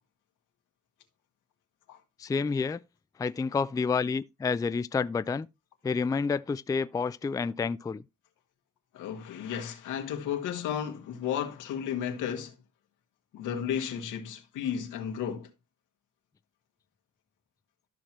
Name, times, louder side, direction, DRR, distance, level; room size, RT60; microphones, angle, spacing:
voice 1, 2.2-2.8 3.2-5.5 5.8-8.0, left 5 dB, 10° left, 0.4 m, -29 dB
voice 2, 8.9-12.5 13.3-15.5, left 8 dB, 90° left, 1.9 m, -33 dB
13.0 x 5.9 x 3.0 m
cardioid pair, 90°, 30 cm